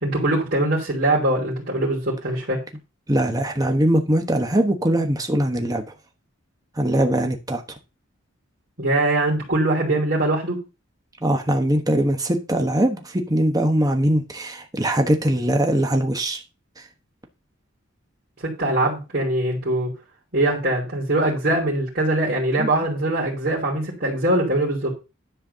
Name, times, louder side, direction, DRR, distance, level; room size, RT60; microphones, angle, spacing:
voice 1, 0.0-2.6 8.8-10.6 18.4-19.9 20.3-24.9, right 1 dB, 50° right, 3.0 m, -22 dB
voice 2, 3.1-5.8 6.8-7.6 11.2-16.4 16.8-16.9 22.6-22.7, right 1 dB, 20° right, 1.2 m, -21 dB
10.5 x 4.5 x 6.7 m
head